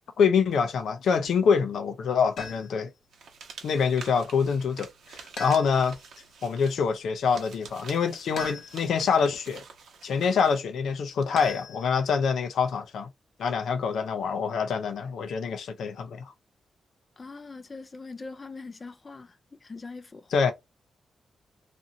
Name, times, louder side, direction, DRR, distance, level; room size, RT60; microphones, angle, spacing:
voice 1, 0.2-2.9 3.6-6.0 6.4-9.6 10.0-13.1 13.4-16.3 20.3-20.5, left 6 dB, 85° left, 0.5 m, -25 dB
sound 1, 2.4-2.9 5.4-6.1 8.4-9.1 11.4-12.2, left 3 dB, 65° left, 1.0 m, -40 dB
sound 2, 3.1-10.6, right 5 dB, 85° right, 0.9 m, -47 dB
voice 2, 17.2-19.3 19.6-20.3, left 3 dB, 25° left, 0.4 m, -42 dB
2.6 x 2.5 x 2.7 m
wide cardioid pair, 150°, 0 cm